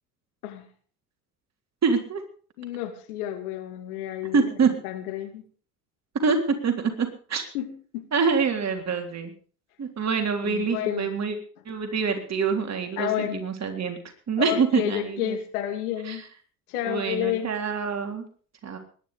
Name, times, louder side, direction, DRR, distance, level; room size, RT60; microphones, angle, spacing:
voice 1, 1.8-2.2 4.3-4.7 6.2-7.4 8.1-9.3 9.8-11.3 11.7-14.0 14.3-15.4 16.1-16.2 16.8-18.2 18.6-18.8, right 5 dB, 35° right, 4 dB, 3.6 m, -25 dB
voice 2, 2.6-5.4 7.5-8.1 10.4-11.1 13.0-13.4 14.4-16.2 16.7-17.5, left 11 dB, 70° left, 6 dB, 2.8 m, -30 dB
20.5 x 10.5 x 5.1 m, 0.43 s
hypercardioid pair, 70°, 46 cm